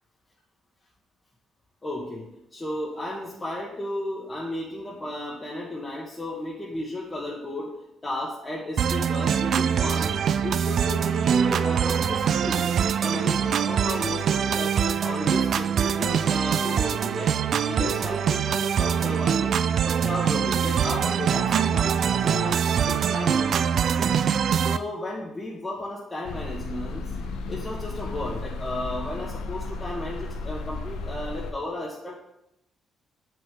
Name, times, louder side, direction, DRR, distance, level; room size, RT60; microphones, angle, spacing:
voice 1, 1.8-7.7 8.0-10.1 10.4-12.6 13.0-17.3 17.7-19.6 19.8-24.1 24.6-27.1 27.5-32.2, left 1 dB, 25° left, -5 dB, 1.6 m, -34 dB
sound 1, 8.8-24.8, right 8 dB, 60° right, 0.4 m, -24 dB
sound 2, 26.2-31.5, left 3 dB, 85° left, 0.8 m, -34 dB
7.8 x 6.1 x 3.8 m, 0.82 s
cardioid pair, 90°, 0 cm